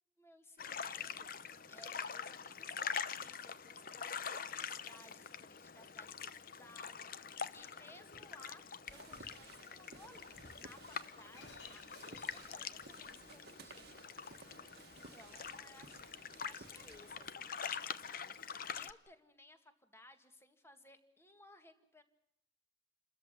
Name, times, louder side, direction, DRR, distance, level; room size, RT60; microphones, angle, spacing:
voice 1, 0.2-14.4 14.9-16.0 16.4-22.0, left 1 dB, 15° left, 8 dB, 1.9 m, -61 dB
sound 1, 0.6-18.9, left 7 dB, 50° left, 0.8 m, -45 dB
Shatter, 7.5-8.4 9.1-9.4 10.3-12.9, left 3 dB, 75° left, 2.8 m, -60 dB
sound 2, 8.9-17.3, right 4 dB, 60° right, 1.4 m, -58 dB
28.5 x 14.0 x 9.7 m, 0.72 s
head